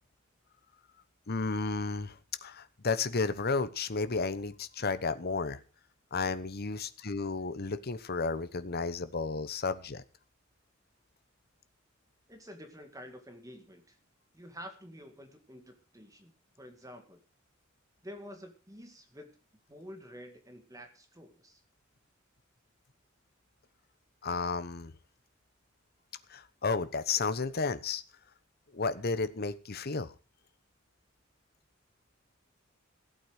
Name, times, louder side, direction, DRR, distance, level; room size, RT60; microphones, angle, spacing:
voice 1, 1.3-5.6 6.1-10.0 24.2-24.9 26.3-28.0 28.7-30.1, left 4 dB, 50° left, 12 dB, 1.0 m, -32 dB
voice 2, 12.3-14.0 14.3-17.2 18.0-19.3 19.7-21.6, equal, 15° right, 5 dB, 2.1 m, -49 dB
15.0 x 8.6 x 6.4 m, 0.35 s
head